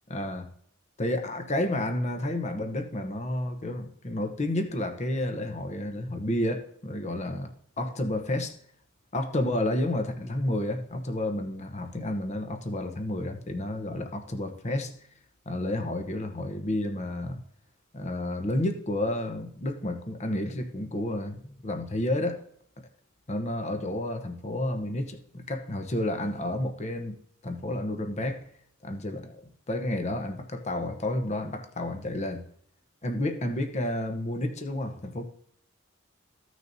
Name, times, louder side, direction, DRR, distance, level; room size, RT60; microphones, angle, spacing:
voice 1, 0.1-0.5 1.0-7.5 7.8-8.5 9.1-14.9 15.5-17.4 17.9-22.4 23.3-27.2 27.4-28.4 28.8-29.4 29.7-32.4 33.0-35.2, left 1 dB, 35° left, 0.9 m, -30 dB
15.0 x 6.3 x 2.7 m
head